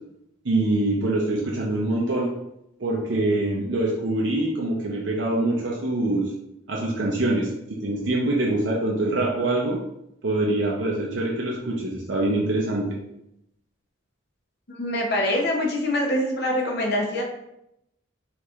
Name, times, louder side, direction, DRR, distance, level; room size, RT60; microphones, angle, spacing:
voice 1, 0.4-2.3 2.8-6.3 6.7-9.8 10.2-12.9, right 2 dB, 65° right, -2 dB, 0.6 m, -24 dB
voice 2, 14.7-17.2, left 1 dB, 55° left, 0 dB, 0.6 m, -24 dB
4.4 x 2.9 x 2.4 m, 0.82 s
head